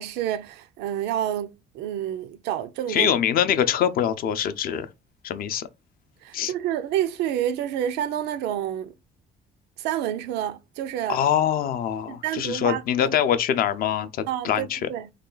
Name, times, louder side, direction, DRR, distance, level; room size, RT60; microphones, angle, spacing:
voice 1, 0.0-3.1 6.2-8.9 9.8-11.2 12.2-13.2 14.3-15.1, right 11 dB, 90° right, 0.5 m, -29 dB
voice 2, 2.9-4.9 5.2-5.7 6.3-6.5 11.1-14.9, left 9 dB, 60° left, 0.5 m, -24 dB
3.2 x 2.3 x 3.8 m
cardioid pair, 110°, 17 cm